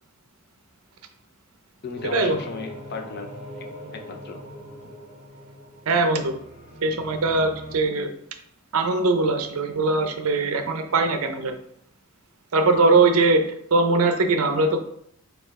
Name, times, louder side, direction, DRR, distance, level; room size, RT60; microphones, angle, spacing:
voice 1, 1.8-4.4, left 4 dB, 50° left, 4 dB, 0.6 m, -36 dB
sound 1, 1.9-7.8, equal, 35° right, 1.3 m, -41 dB
voice 2, 5.9-6.4 6.8-8.1 8.7-11.6 12.5-14.8, right 3 dB, 70° right, 7 dB, 0.5 m, -21 dB
4.3 x 2.4 x 4.6 m, 0.69 s
head